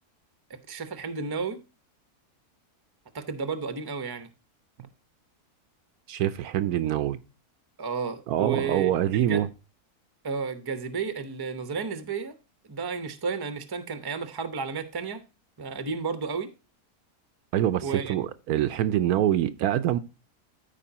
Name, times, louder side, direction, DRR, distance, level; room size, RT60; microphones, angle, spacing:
voice 1, 0.5-1.6 3.1-4.3 7.8-9.4 10.2-12.3 12.7-15.2 15.6-16.5 17.8-18.1, right 5 dB, 20° right, 0.7 m, -32 dB
voice 2, 6.1-7.2 8.3-9.5 17.5-20.0, right 12 dB, 75° right, 1.0 m, -25 dB
13.5 x 4.8 x 2.8 m
omnidirectional pair, 1.6 m